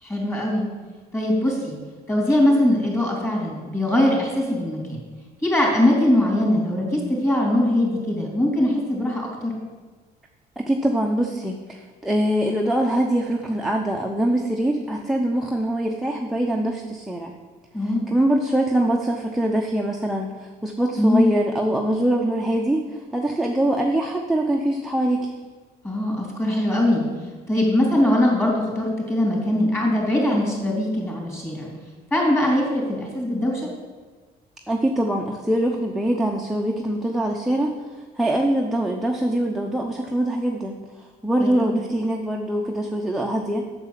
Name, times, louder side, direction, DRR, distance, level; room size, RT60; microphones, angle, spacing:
voice 1, 0.0-0.6 1.1-1.8 2.1-5.0 5.4-9.5 17.7-18.0 21.0-21.3 25.8-27.0 27.5-31.7 32.1-33.7 41.4-41.8, left 1 dB, 15° left, -2 dB, 3.5 m, -21 dB
voice 2, 10.6-17.4 17.8-25.3 34.7-40.8 41.2-43.7, right 1 dB, ahead, 0 dB, 0.8 m, -23 dB
8.1 x 6.8 x 7.3 m, 1.4 s
cardioid pair, 110°, 17 cm